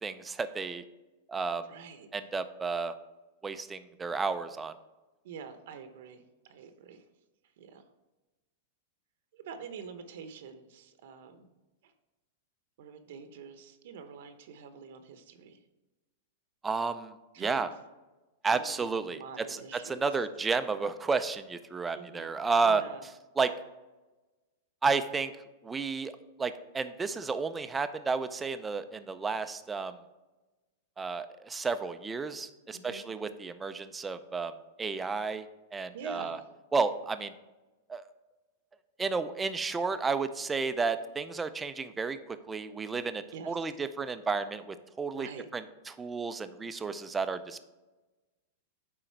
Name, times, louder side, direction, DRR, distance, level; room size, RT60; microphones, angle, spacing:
voice 1, 0.0-0.8 1.3-1.6 2.1-2.9 3.4-4.7 16.6-17.7 18.4-22.8 23.4-23.5 24.8-25.3 25.6-26.1 26.4-30.0 31.0-34.5 34.8-35.5 35.7-36.4 36.7-37.3 37.9-38.0 39.0-47.6, right 4 dB, 10° right, 11 dB, 0.4 m, -32 dB
voice 2, 1.6-2.1 5.2-7.0 7.6-7.8 9.3-11.5 11.8-11.9 12.8-15.6 17.3-17.7 18.5-20.0 21.9-22.4 22.6-23.0 32.7-33.1 35.9-36.5 43.3-43.6 45.1-45.5, right 6 dB, 65° right, 8 dB, 0.8 m, -46 dB
9.1 x 3.8 x 4.5 m, 1.1 s
supercardioid pair, 145°, 0 cm